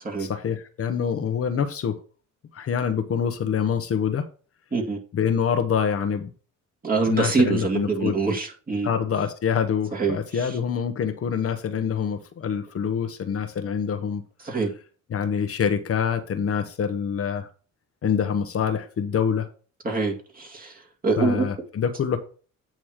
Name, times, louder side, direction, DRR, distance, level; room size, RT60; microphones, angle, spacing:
voice 1, 0.2-2.0 2.5-4.2 5.1-6.3 7.0-8.2 8.8-14.2 15.1-17.5 18.0-19.5 21.2-22.2, left 7 dB, 50° left, 0.9 m, -25 dB
voice 2, 6.8-8.9 9.9-10.5 14.4-14.7 19.8-21.5, right 4 dB, 30° right, 2.1 m, -25 dB
8.9 x 3.1 x 6.4 m
cardioid pair, 90°, 30 cm